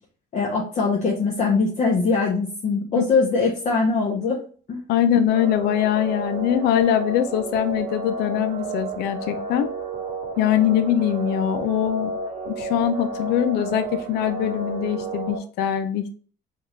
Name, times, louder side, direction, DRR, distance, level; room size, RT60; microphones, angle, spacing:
voice 1, 0.3-4.4 4.7-4.8, left 4 dB, 45° left, -2 dB, 0.8 m, -22 dB
voice 2, 4.9-9.7 10.4-12.1 12.5-16.1, left 10 dB, 75° left, 9 dB, 0.5 m, -22 dB
sound 1, 5.3-15.4, right 2 dB, 70° right, 1.1 m, -31 dB
3.7 x 2.4 x 3.1 m, 0.42 s
cardioid pair, 110°, 17 cm